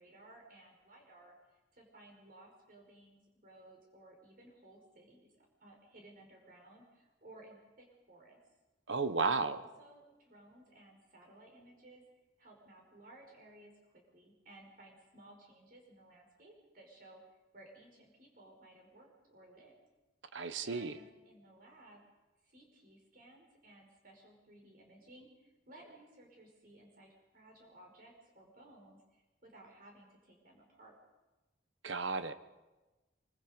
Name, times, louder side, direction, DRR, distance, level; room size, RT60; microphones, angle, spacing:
voice 1, 0.0-8.4 9.5-12.0 12.4-17.2 17.5-19.7 20.3-22.0 22.4-31.0, right 1 dB, 50° right, 0 dB, 5.4 m, -58 dB
voice 2, 8.9-9.6 20.3-21.0 31.8-32.3, right 4 dB, 90° right, 11 dB, 1.1 m, -33 dB
25.5 x 24.5 x 5.3 m, 1.1 s
head